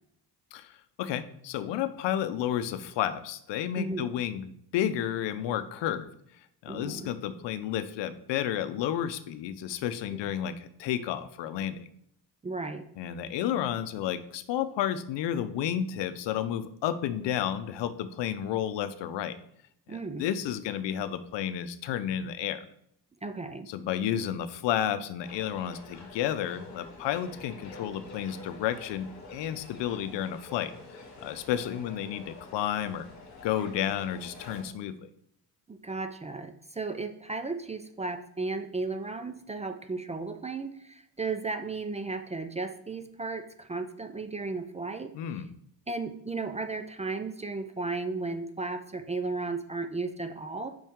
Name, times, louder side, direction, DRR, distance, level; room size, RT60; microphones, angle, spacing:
voice 1, 0.5-6.1 6.6-11.9 13.0-19.4 19.9-22.6 23.7-30.7 31.2-33.1 33.4-35.0 45.1-45.5, left 10 dB, 75° left, 12 dB, 0.6 m, -31 dB
voice 2, 3.8-4.1 6.7-7.1 12.4-12.9 19.9-20.3 23.2-23.7 35.7-45.1 45.9-50.7, right 3 dB, 15° right, 8 dB, 0.4 m, -34 dB
sound 1, 25.2-34.6, left 3 dB, 40° left, 1.7 m, -48 dB
5.6 x 5.5 x 3.6 m, 0.71 s
cardioid pair, 110°, 43 cm